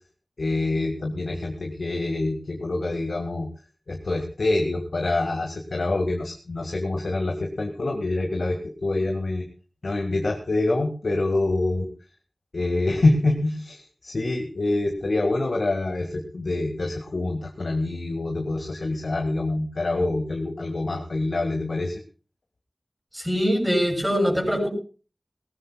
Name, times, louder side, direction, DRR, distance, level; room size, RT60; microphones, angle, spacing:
voice 1, 0.4-3.5 3.9-9.5 9.8-11.9 12.5-22.0, left 2 dB, 80° left, 2 dB, 1.9 m, -26 dB
voice 2, 23.1-24.7, equal, 10° right, -2 dB, 5.8 m, -23 dB
20.0 x 18.5 x 2.3 m, 0.37 s
wide cardioid pair, 65°, 0 cm